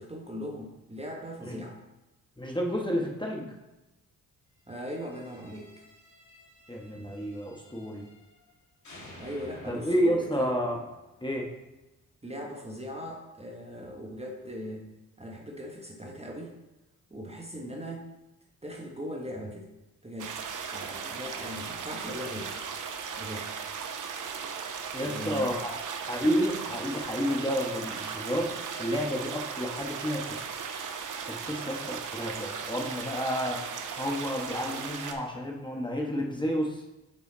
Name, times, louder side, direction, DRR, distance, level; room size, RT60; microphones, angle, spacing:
voice 1, 0.0-1.8 4.7-5.7 9.2-10.6 12.2-14.9 15.2-16.6 17.1-18.1 18.6-19.7 20.0-22.5 23.2-23.5 25.0-25.6, equal, 15° right, 0 dB, 1.2 m, -39 dB
voice 2, 2.4-3.5 6.7-8.0 9.7-10.8 11.2-11.5 24.9-30.4 31.3-33.6 34.0-36.8, equal, 10° left, 0 dB, 1.3 m, -30 dB
sound 1, 4.7-8.5 8.8-11.9, left 1 dB, 45° left, 2.3 m, -53 dB
sound 2, 20.2-35.1, right 6 dB, 50° right, 0.8 m, -37 dB
5.4 x 4.9 x 4.0 m, 1.0 s
hypercardioid pair, 40°, 39 cm